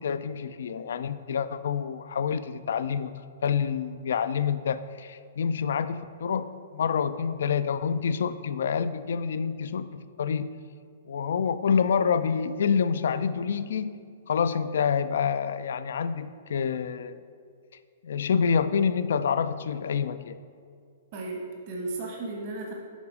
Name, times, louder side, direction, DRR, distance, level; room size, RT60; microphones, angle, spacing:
voice 1, 0.0-3.1 3.4-6.4 6.7-10.5 11.1-14.0 14.3-17.2 18.0-20.4, left 6 dB, 70° left, 13 dB, 0.3 m, -27 dB
voice 2, 21.1-22.7, right 2 dB, 45° right, 0 dB, 1.2 m, -35 dB
7.2 x 4.0 x 4.8 m, 2.3 s
hypercardioid pair, 130°, 0 cm